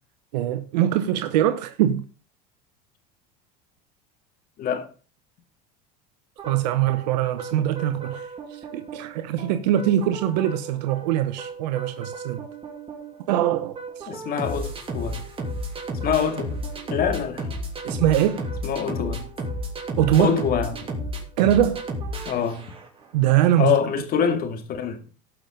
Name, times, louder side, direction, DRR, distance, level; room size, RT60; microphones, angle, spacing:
voice 1, 0.3-2.0 6.5-12.4 13.3-14.1 17.8-18.5 20.0-20.4 21.4-21.8 23.1-23.8, right 11 dB, 85° right, 0.9 m, -22 dB
voice 2, 4.6-4.9 14.1-15.3 16.0-16.6 16.9-17.5 18.6-19.3 20.2-20.9 22.3-22.7 23.6-25.1, left 7 dB, 45° left, 2.2 m, -25 dB
sound 1, 6.4-23.0, right 1 dB, 25° right, 3.1 m, -33 dB
18.0 x 6.0 x 3.8 m
supercardioid pair, 105°, 21 cm